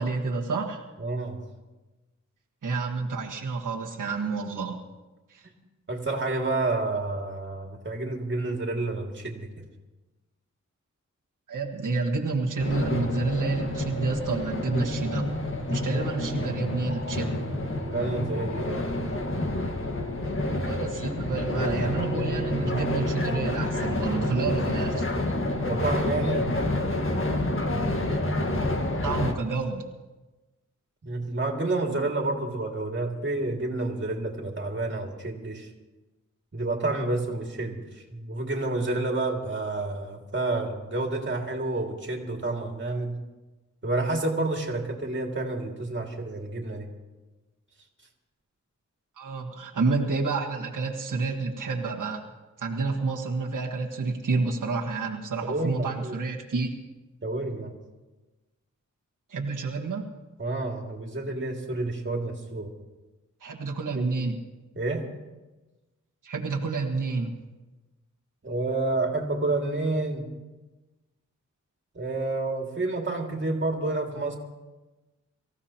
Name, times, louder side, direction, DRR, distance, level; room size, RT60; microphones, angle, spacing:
voice 1, 0.0-0.8 2.6-4.8 5.3-5.5 11.5-15.3 15.7-17.4 20.4-25.1 29.0-29.8 49.2-52.2 52.6-56.8 59.3-60.1 63.4-64.4 66.2-67.3, right 4 dB, 85° right, -1 dB, 1.5 m, -29 dB
voice 2, 1.0-1.4 5.9-9.5 17.9-18.9 25.6-26.5 31.0-35.7 36.5-43.2 43.8-46.9 55.4-56.2 57.2-57.7 60.4-62.7 63.9-64.1 64.8-65.1 68.4-70.3 71.9-74.4, right 2 dB, 40° right, 1 dB, 2.2 m, -29 dB
sound 1, 12.6-29.3, left 1 dB, 45° left, 1.6 m, -28 dB
24.5 x 15.0 x 2.9 m, 1.1 s
wide cardioid pair, 95°, 31 cm